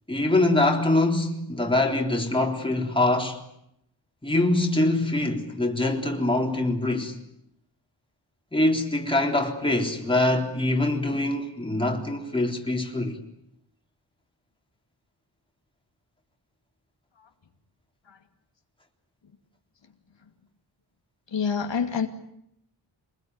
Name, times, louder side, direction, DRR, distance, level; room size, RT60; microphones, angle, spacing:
voice 1, 0.1-3.4 4.2-7.2 8.5-13.2, left 2 dB, 10° left, 3.7 m, -24 dB
voice 2, 21.3-22.1, left 6 dB, 75° left, 2.5 m, -26 dB
26.5 x 21.0 x 9.5 m
wide cardioid pair, 115°, 45 cm